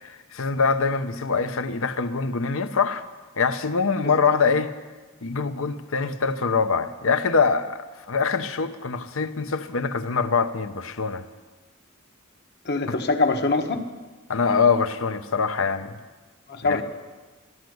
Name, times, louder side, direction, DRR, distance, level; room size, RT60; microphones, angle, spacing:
voice 1, 0.0-3.0 3.4-4.7 5.2-11.2 14.3-16.0 16.6-16.8, left 5 dB, 65° left, 10 dB, 0.9 m, -24 dB
voice 2, 4.0-4.3 12.6-13.8 16.5-16.8, left 3 dB, 50° left, 5 dB, 1.3 m, -24 dB
13.5 x 12.5 x 7.9 m, 1.3 s
head